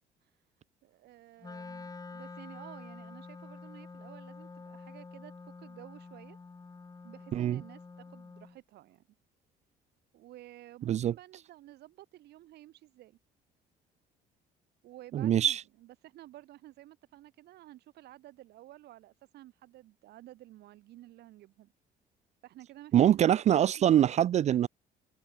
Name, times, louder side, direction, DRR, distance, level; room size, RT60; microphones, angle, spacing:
voice 1, 0.8-5.3 5.6-6.4 7.0-9.1 10.1-13.2 14.8-21.7 22.4-24.1, right 15 dB, 75° right, 4.9 m, -52 dB
Wind instrument woodwind instrument, 1.4-8.6, left 4 dB, 20° left, 2.9 m, -47 dB
voice 2, 15.1-15.6 22.9-24.7, right 10 dB, 40° right, 0.4 m, -24 dB
cardioid pair, 110°, 17 cm